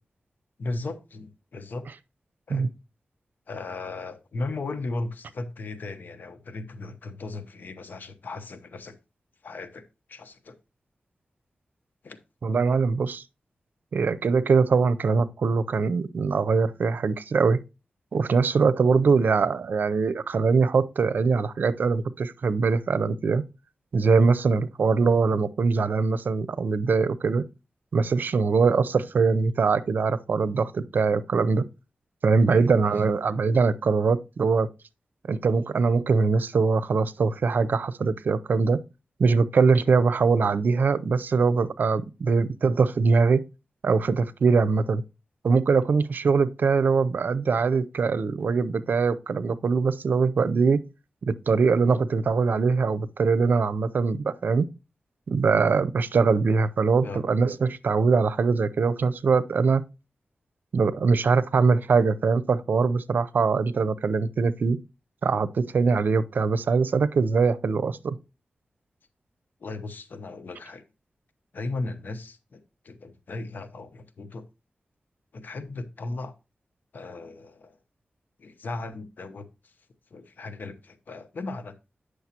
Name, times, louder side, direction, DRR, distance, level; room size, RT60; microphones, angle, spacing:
voice 1, 0.6-1.9 2.5-2.7 3.5-9.0 9.4-9.8 10.1-10.6 12.0-12.2 32.5-32.7 57.0-57.2 69.6-70.8 71.5-72.6 72.8-74.4 75.3-76.3 76.9-77.8 78.4-79.7 80.1-81.7, left 3 dB, 75° left, 0.9 m, -36 dB
voice 2, 12.4-13.2 13.9-17.6 18.1-23.4 23.9-27.4 27.9-31.7 32.2-34.7 35.3-38.8 39.2-43.4 43.8-45.0 45.4-50.8 51.2-54.7 55.3-59.8 60.7-64.8 65.2-68.2, right 4 dB, 75° right, 0.6 m, -22 dB
9.4 x 6.4 x 2.9 m
cardioid pair, 60°, 3 cm